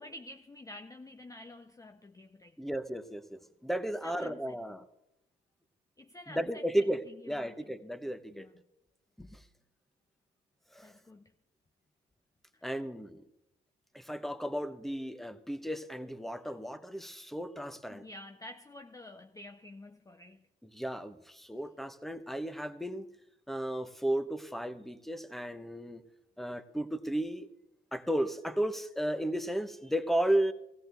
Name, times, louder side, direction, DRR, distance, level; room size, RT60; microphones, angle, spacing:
voice 1, 0.0-2.6 4.0-4.8 6.0-7.8 8.3-8.5 10.8-11.3 12.5-12.6 17.9-20.4, left 1 dB, 15° left, 0.6 m, -49 dB
voice 2, 2.6-4.8 6.3-8.5 9.2-9.4 10.7-10.9 12.6-13.2 13.9-18.0 20.7-23.0 23.5-26.0 26.4-27.5 27.9-30.5, right 1 dB, ahead, 1.0 m, -34 dB
16.5 x 16.0 x 3.4 m
cardioid pair, 90°, 20 cm